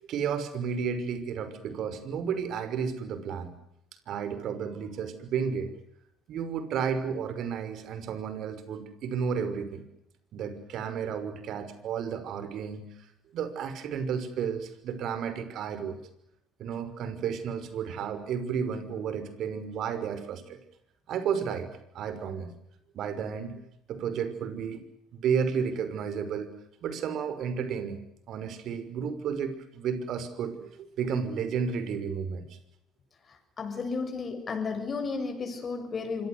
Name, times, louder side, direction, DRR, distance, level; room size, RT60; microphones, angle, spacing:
voice 1, 0.0-3.5 4.1-5.7 6.3-9.8 10.3-13.1 13.3-16.0 16.6-20.6 21.1-21.7 21.9-22.5 22.9-23.6 23.9-24.8 25.1-26.5 26.8-28.0 28.3-32.6, right 7 dB, 60° right, 5.9 m, -32 dB
voice 2, 33.6-36.3, left 4 dB, 40° left, 7.1 m, -33 dB
26.5 x 25.0 x 8.1 m
hypercardioid pair, 60°, 0 cm